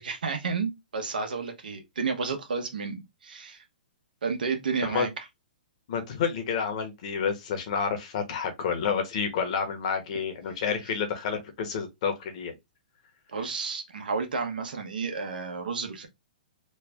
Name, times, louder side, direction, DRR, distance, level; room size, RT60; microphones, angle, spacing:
voice 1, 0.0-3.6 4.2-5.2 13.3-16.1, right 5 dB, 85° right, 1.0 m, -31 dB
voice 2, 5.9-12.5, left 6 dB, 50° left, 1.0 m, -29 dB
3.2 x 2.2 x 3.3 m
hypercardioid pair, 150°, 5 cm